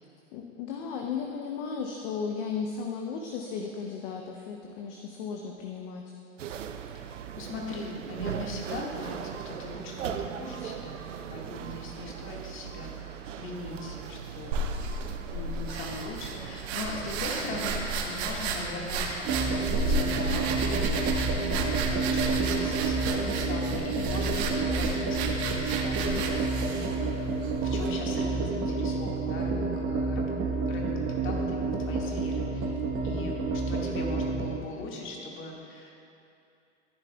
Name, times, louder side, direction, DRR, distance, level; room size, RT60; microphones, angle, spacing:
voice 1, 0.3-6.1, left 5 dB, 50° left, 1 dB, 0.9 m, -35 dB
sound 1, 6.4-23.1, right 8 dB, 75° right, 0.6 m, -40 dB
voice 2, 6.9-11.0 11.3-14.7 15.3-21.2 21.9-26.9 27.6-36.1, left 2 dB, 35° left, -1 dB, 1.9 m, -40 dB
sound 2, 14.5-27.9, right 3 dB, 55° right, 1.3 m, -33 dB
sound 3, 19.2-34.6, right 3 dB, 35° right, 1.3 m, -29 dB
14.5 x 9.9 x 2.3 m, 2.6 s
figure-of-eight pair, 95°, 37 cm